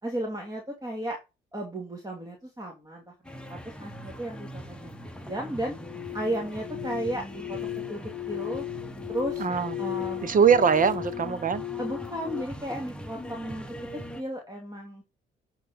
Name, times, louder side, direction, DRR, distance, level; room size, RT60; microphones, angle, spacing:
voice 1, 0.0-1.2 1.5-5.8 6.1-8.7 9.1-9.4 9.8-10.3 11.8-13.6 13.9-15.0, right 1 dB, 20° right, 2.7 m, -34 dB
sound 1, 3.2-14.2, equal, 5° left, 1.4 m, -42 dB
sound 2, 5.8-12.4, left 15 dB, 65° left, 0.4 m, -36 dB
voice 2, 9.4-9.7 10.2-11.6, right 6 dB, 45° right, 1.2 m, -22 dB
9.4 x 4.3 x 5.5 m
cardioid pair, 90°, 20 cm